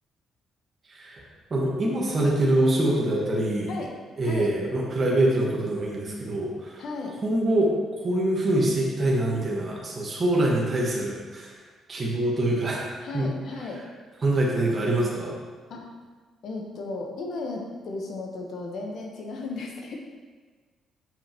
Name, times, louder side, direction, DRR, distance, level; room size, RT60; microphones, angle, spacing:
voice 1, 0.9-1.2 1.5-3.7 4.2-6.8 7.2-7.7 8.0-11.5 11.9-13.3 14.2-15.3, right 1 dB, 40° right, -3 dB, 1.4 m, -24 dB
voice 2, 4.2-4.5 6.8-7.2 10.4-10.5 13.0-13.8 15.7-15.8 16.4-20.0, left 3 dB, 70° left, 0 dB, 1.1 m, -35 dB
7.1 x 5.3 x 3.0 m, 1.4 s
cardioid pair, 90°, 0 cm